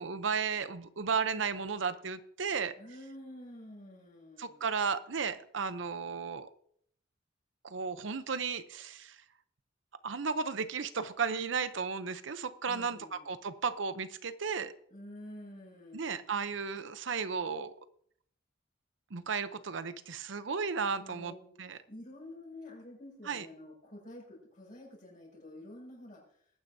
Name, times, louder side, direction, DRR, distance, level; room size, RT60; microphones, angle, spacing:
voice 1, 0.0-2.7 4.4-6.5 7.6-9.2 10.0-14.7 15.9-17.7 19.1-21.8 23.3-23.5, right 5 dB, 70° right, 12 dB, 0.7 m, -34 dB
voice 2, 2.8-4.7 12.6-13.4 14.9-16.2 21.0-26.5, left 1 dB, 45° left, -2 dB, 6.0 m, -49 dB
21.5 x 9.5 x 2.7 m, 0.66 s
head